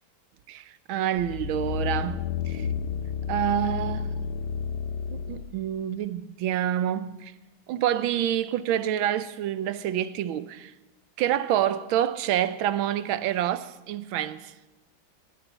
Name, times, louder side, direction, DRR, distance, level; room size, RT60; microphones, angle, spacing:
voice 1, 0.5-2.7 3.3-4.1 5.1-7.3 7.7-10.7 11.2-14.5, right 11 dB, 90° right, 1.5 m, -27 dB
sound 1, 1.2-5.6 6.0-6.1, left 7 dB, 80° left, 1.6 m, -31 dB
19.0 x 16.0 x 4.1 m
omnidirectional pair, 2.2 m